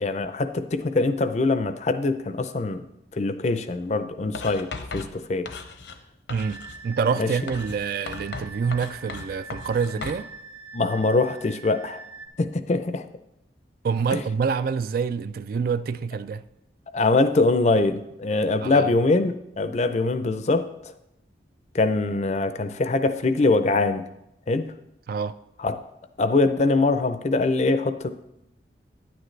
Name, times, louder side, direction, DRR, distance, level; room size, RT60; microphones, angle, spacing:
voice 1, 0.0-2.8 3.1-4.7 4.9-5.5 7.2-7.3 10.7-12.0 12.4-13.1 14.1-14.2 16.9-20.7 21.7-24.0 24.5-24.7 25.6-25.8 26.2-28.1, left 3 dB, 40° left, 0.5 m, -23 dB
Writing, 4.3-6.0 6.3-6.8 7.5-10.3, left 4 dB, 75° left, 0.8 m, -37 dB
voice 2, 6.3-10.3 13.8-16.4 18.6-18.9 25.1-25.4, right 5 dB, 55° right, 0.3 m, -27 dB
sound 1, 6.4-12.3, right 4 dB, 35° right, 0.9 m, -43 dB
10.0 x 9.0 x 3.2 m
head